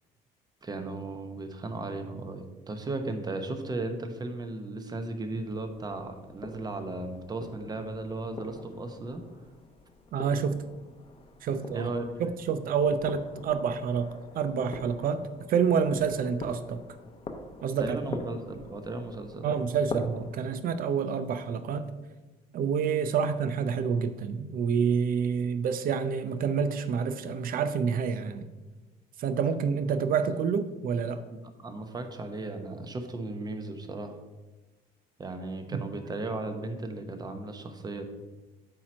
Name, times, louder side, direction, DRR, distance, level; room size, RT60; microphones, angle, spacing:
voice 1, 0.6-9.2 11.7-12.0 17.8-19.7 31.3-34.2 35.2-38.0, right 2 dB, 25° right, 6 dB, 0.9 m, -36 dB
sound 1, 5.3-20.4, left 3 dB, 35° left, 0.8 m, -44 dB
voice 2, 10.1-10.6 11.4-11.9 12.2-15.2 15.5-16.8 17.6-18.0 19.4-21.9 22.5-28.5 29.2-31.2 35.7-35.8, right 6 dB, 60° right, 11 dB, 0.6 m, -28 dB
8.5 x 3.0 x 6.3 m, 1.2 s
cardioid pair, 110°, 17 cm